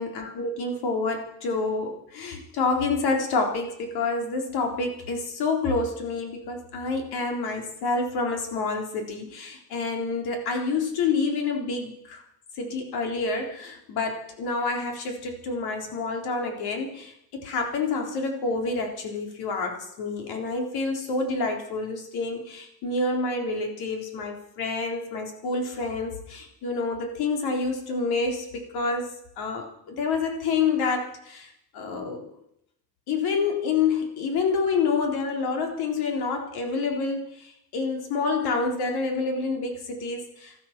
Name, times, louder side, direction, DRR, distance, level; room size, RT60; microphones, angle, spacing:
voice 1, 0.0-12.2 12.6-31.5 31.7-32.3 33.1-40.6, left 4 dB, 80° left, 3 dB, 4.0 m, -28 dB
14.0 x 13.0 x 7.5 m, 0.77 s
cardioid pair, 110°, 37 cm